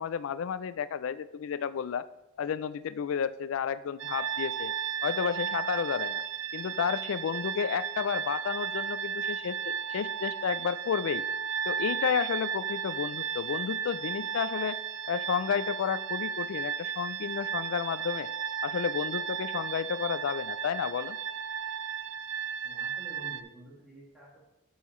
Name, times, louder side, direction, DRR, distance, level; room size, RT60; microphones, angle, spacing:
voice 1, 0.0-2.1 2.4-4.7 5.0-6.2 6.5-11.3 11.7-14.8 15.1-18.3 18.6-21.2, left 7 dB, 80° left, 16 dB, 0.3 m, -31 dB
sound 1, 4.0-23.4, right 7 dB, 75° right, 0.5 m, -34 dB
voice 2, 22.6-24.4, right 1 dB, 5° right, -8 dB, 2.1 m, -50 dB
11.5 x 5.6 x 3.1 m, 0.94 s
head